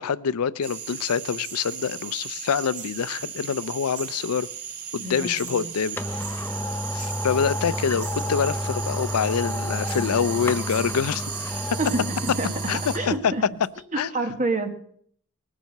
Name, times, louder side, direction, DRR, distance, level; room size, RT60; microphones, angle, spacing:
voice 1, 0.0-4.5 4.9-6.5 6.9-11.8 12.7-12.8 13.0-13.3 14.0-14.1, left 7 dB, 85° left, 0.5 m, -26 dB
sound 1, 0.6-13.0, right 8 dB, 90° right, 1.7 m, -36 dB
voice 2, 5.0-5.7 11.8-12.5 12.9-13.4 13.9-14.7, right 2 dB, 35° right, 1.4 m, -28 dB
sound 2, 5.5-5.6 6.0-13.2 13.6-13.7, left 1 dB, 10° left, 0.6 m, -31 dB
19.5 x 7.5 x 6.6 m
head